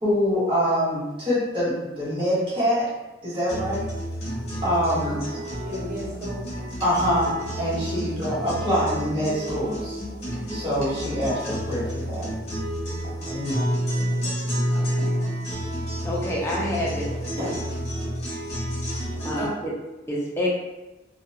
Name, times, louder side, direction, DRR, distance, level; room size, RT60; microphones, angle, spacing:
voice 1, 0.0-2.8 3.2-3.8 4.6-5.2 6.8-7.3 7.6-10.0 10.5-12.3 13.3-13.8 17.4-17.5, equal, 30° right, -10 dB, 1.2 m, -25 dB
sound 1, 3.5-19.5, equal, 35° left, 1.2 m, -30 dB
voice 2, 5.0-5.4 5.6-6.4 7.8-8.1 14.7-15.2 19.4-19.5, equal, 45° right, -8 dB, 1.1 m, -36 dB
voice 3, 16.0-17.1 19.2-19.5 20.1-20.5, left 1 dB, 15° left, -5 dB, 0.6 m, -26 dB
2.6 x 2.2 x 2.8 m, 1.1 s
head